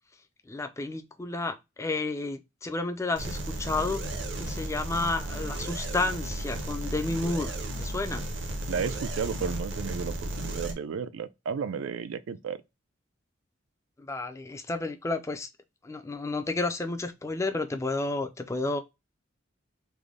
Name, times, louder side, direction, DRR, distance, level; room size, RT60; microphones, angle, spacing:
voice 1, 0.5-8.2 14.0-15.5 15.8-18.8, left 3 dB, 15° left, 0.3 m, -31 dB
sound 1, 3.1-10.7, right 1 dB, 65° right, 0.7 m, -34 dB
voice 2, 8.7-12.6, right 6 dB, 85° right, 0.4 m, -33 dB
3.3 x 2.1 x 3.5 m
head